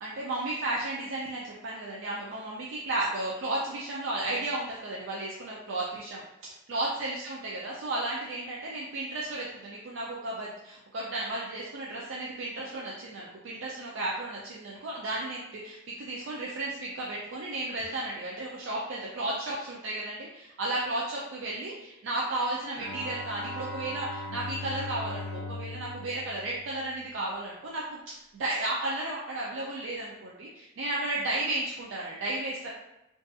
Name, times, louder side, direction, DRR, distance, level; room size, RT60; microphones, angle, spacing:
voice 1, 0.0-32.7, right 2 dB, 65° right, -4 dB, 0.4 m, -34 dB
Bowed string instrument, 22.8-27.2, left 2 dB, 90° left, 0.5 m, -39 dB
2.5 x 2.4 x 2.3 m, 0.94 s
head